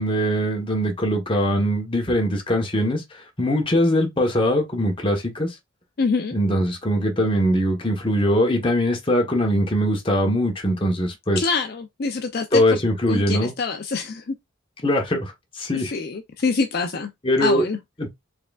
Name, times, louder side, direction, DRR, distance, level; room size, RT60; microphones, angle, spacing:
voice 1, 0.0-5.5 6.3-11.5 12.5-13.5 14.8-15.9 17.2-17.6 18.0-18.1, equal, 25° left, 1.1 m, -22 dB
voice 2, 6.0-6.3 11.4-12.8 13.1-14.3 15.7-17.1 17.4-17.8, left 4 dB, 50° left, 0.5 m, -25 dB
4.6 x 3.5 x 2.4 m
head